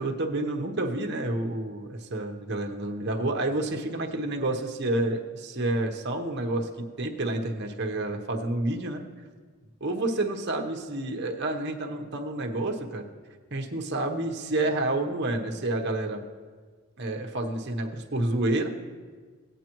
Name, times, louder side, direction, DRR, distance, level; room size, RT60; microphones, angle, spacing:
voice 1, 0.0-9.0 9.8-13.0 13.5-16.2 17.0-18.7, right 2 dB, 50° right, 2 dB, 0.9 m, -29 dB
17.0 x 9.1 x 3.0 m, 1.5 s
head